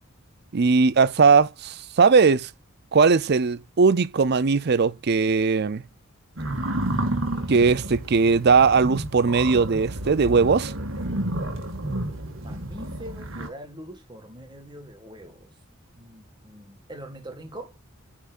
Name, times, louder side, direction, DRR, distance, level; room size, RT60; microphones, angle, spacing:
voice 1, 0.5-2.5 2.9-5.8 7.5-10.7, right 5 dB, 55° right, 0.5 m, -19 dB
sound 1, 6.4-13.5, right 1 dB, 70° right, 1.9 m, -30 dB
voice 2, 12.4-15.5 15.9-17.8, right 1 dB, 20° right, 1.7 m, -42 dB
8.4 x 4.5 x 2.5 m
head